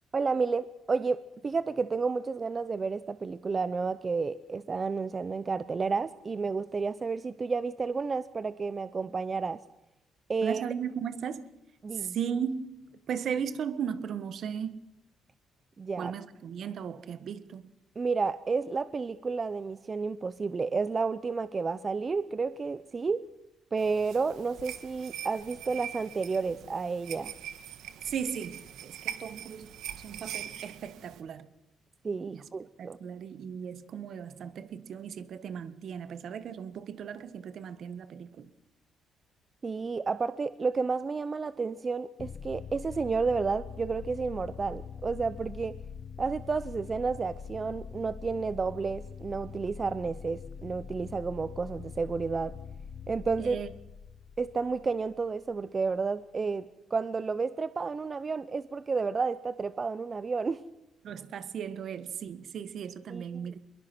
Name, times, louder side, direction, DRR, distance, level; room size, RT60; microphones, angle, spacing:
voice 1, 0.1-9.6 10.3-10.6 11.8-12.2 15.8-16.1 18.0-23.2 23.7-27.3 32.0-33.0 39.6-45.8 46.2-52.5 53.1-53.6 54.4-60.6 63.1-63.2, right 4 dB, 35° right, 15 dB, 0.7 m, -31 dB
voice 2, 10.4-11.5 11.9-14.8 16.0-17.7 28.0-31.5 32.3-32.5 32.8-38.5 53.4-53.7 61.0-63.6, right 7 dB, 65° right, 13 dB, 1.4 m, -36 dB
sound 1, 23.8-31.2, right 10 dB, 85° right, 1.8 m, -43 dB
sound 2, 42.2-55.6, left 6 dB, 50° left, 1.0 m, -44 dB
22.5 x 22.0 x 6.1 m, 0.94 s
cardioid pair, 90°, 0 cm